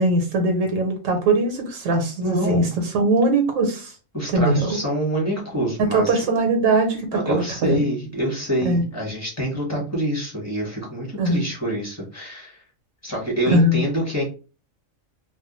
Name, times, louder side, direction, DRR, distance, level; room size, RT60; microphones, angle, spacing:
voice 1, 0.0-3.9 4.3-4.7 5.8-7.8 8.6-8.8 11.2-11.4 13.5-13.8, right 2 dB, 80° right, 4 dB, 1.0 m, -20 dB
voice 2, 2.2-2.8 4.1-6.2 7.1-12.6 13.0-14.2, equal, 15° left, -2 dB, 0.9 m, -26 dB
2.2 x 2.1 x 2.9 m, 0.34 s
omnidirectional pair, 1.3 m